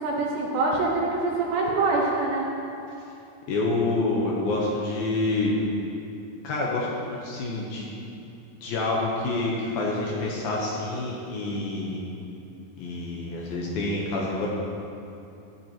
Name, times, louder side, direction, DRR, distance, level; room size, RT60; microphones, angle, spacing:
voice 1, 0.0-2.5, right 3 dB, 75° right, -3 dB, 3.2 m, -25 dB
voice 2, 3.5-5.5 6.4-7.9 8.6-12.0 12.8-14.5, left 2 dB, 75° left, -3 dB, 2.3 m, -27 dB
13.5 x 10.5 x 3.0 m, 2.7 s
omnidirectional pair, 5.2 m